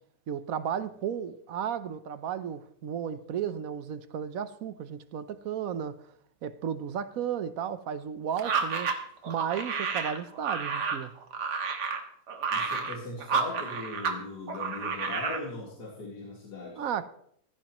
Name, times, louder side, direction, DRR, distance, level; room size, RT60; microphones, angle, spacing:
voice 1, 0.3-6.0 6.4-8.9 9.3-11.1 16.8-17.1, right 8 dB, 65° right, 1.2 m, -34 dB
sound 1, 8.4-14.2 14.5-15.4, right 5 dB, 90° right, 1.9 m, -31 dB
voice 2, 12.5-16.8, left 2 dB, 90° left, 2.8 m, -39 dB
15.5 x 15.0 x 3.1 m
omnidirectional pair, 1.7 m